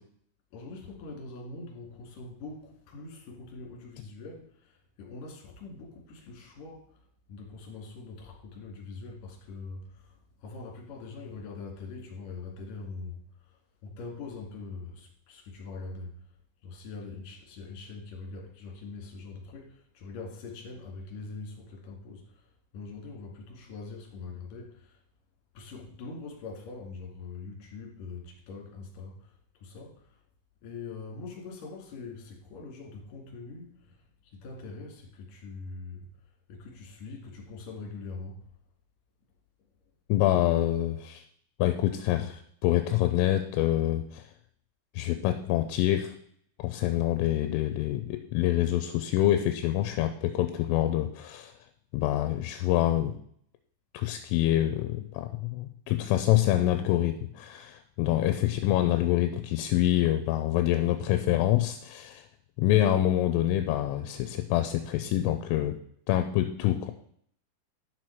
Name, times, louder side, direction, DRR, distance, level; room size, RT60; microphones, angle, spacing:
voice 1, 0.5-7.0 7.3-16.2 16.6-25.0 25.5-30.2 30.6-36.1 36.5-38.5, left 3 dB, 50° left, -1 dB, 3.4 m, -43 dB
voice 2, 40.1-41.2 41.6-44.2 45.0-46.1 46.6-51.5 51.9-53.1 53.9-62.2 62.6-65.8 66.1-66.9, left 13 dB, 85° left, 7 dB, 3.1 m, -26 dB
11.5 x 6.1 x 4.5 m, 0.65 s
omnidirectional pair, 5.8 m